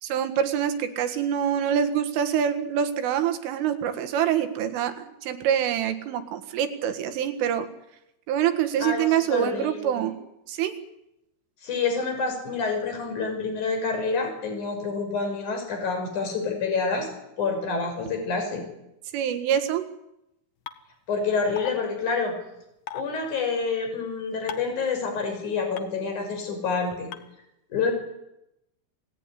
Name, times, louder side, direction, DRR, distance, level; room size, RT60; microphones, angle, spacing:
voice 1, 0.0-7.7 8.3-10.1 10.5-10.8 19.1-19.9, right 9 dB, 80° right, 8 dB, 4.2 m, -25 dB
voice 2, 8.8-10.1 11.6-17.1 17.4-18.6 21.1-22.3 22.9-27.1 27.7-27.9, left 4 dB, 40° left, 4 dB, 7.1 m, -28 dB
sound 1, 20.7-20.8 21.6-21.7 22.9-23.0 24.5-24.7 25.8-25.9 27.1-27.2, left 10 dB, 90° left, 1.7 m, -34 dB
29.5 x 18.5 x 9.9 m, 0.87 s
omnidirectional pair, 5.7 m